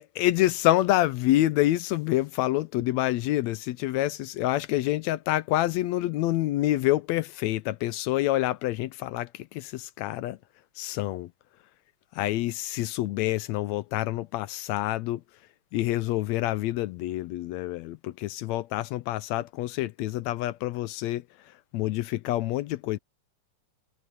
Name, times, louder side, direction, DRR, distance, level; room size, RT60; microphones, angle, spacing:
voice 1, 0.0-10.4 10.8-11.3 12.1-15.2 15.7-21.2 21.7-23.0, left 15 dB, 75° left, 1.7 m, -27 dB
omnidirectional pair, 3.6 m